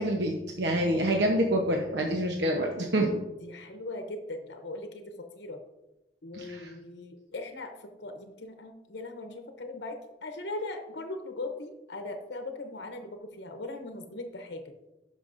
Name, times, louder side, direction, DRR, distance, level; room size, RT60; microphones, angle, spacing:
voice 1, 0.0-3.1 6.3-6.7, right 1 dB, 75° right, 1 dB, 0.9 m, -27 dB
voice 2, 3.4-5.6 6.2-14.7, left 2 dB, 75° left, 6 dB, 0.8 m, -39 dB
11.5 x 5.5 x 2.6 m, 0.97 s
head